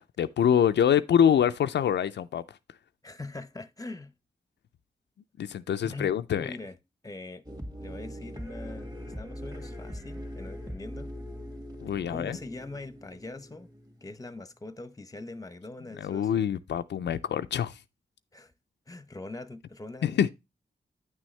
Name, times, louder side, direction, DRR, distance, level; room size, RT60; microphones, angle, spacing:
voice 1, 0.2-2.4 5.4-6.6 11.8-12.4 16.0-17.8 20.0-20.3, left 9 dB, 85° left, 0.4 m, -25 dB
voice 2, 3.0-4.1 5.8-6.8 7.0-7.4 7.8-8.9 9.2-11.1 11.9-13.7 14.0-16.5 18.3-18.5 18.9-20.3, left 2 dB, 20° left, 0.8 m, -42 dB
sound 1, 7.5-14.4, equal, 20° right, 2.1 m, -41 dB
9.2 x 6.2 x 3.2 m
cardioid pair, 60°, 18 cm